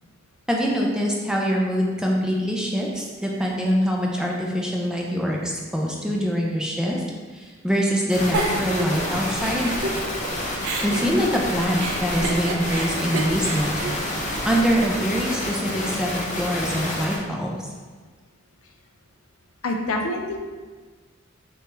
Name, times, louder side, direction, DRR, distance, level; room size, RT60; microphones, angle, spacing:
voice 1, 0.5-7.0 7.3-9.7 10.8-14.0 14.4-17.6, equal, 5° right, -2 dB, 0.4 m, -24 dB
sound 1, 8.1-17.2, left 1 dB, 35° left, 0.7 m, -29 dB
Giggle, 8.3-10.3 10.6-14.8, right 2 dB, 80° right, 0.5 m, -30 dB
voice 2, 19.6-20.4, left 2 dB, 85° left, 2 dB, 0.5 m, -26 dB
5.8 x 2.3 x 3.1 m, 1.4 s
head